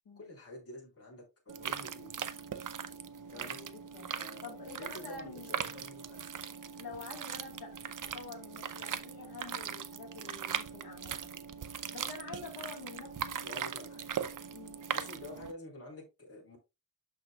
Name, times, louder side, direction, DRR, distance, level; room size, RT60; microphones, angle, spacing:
voice 1, 0.2-2.2 3.3-3.6 4.2-6.2 13.4-14.1 14.9-16.6, left 1 dB, 40° left, 3.7 m, -48 dB
sound 1, 1.5-15.5, right 8 dB, 55° right, 0.6 m, -40 dB
voice 2, 3.3-4.1 4.4-5.6 6.8-7.8 8.1-11.3 11.9-13.4 14.5-14.8, left 4 dB, 75° left, 1.6 m, -47 dB
12.0 x 4.4 x 2.3 m
wide cardioid pair, 150°, 37 cm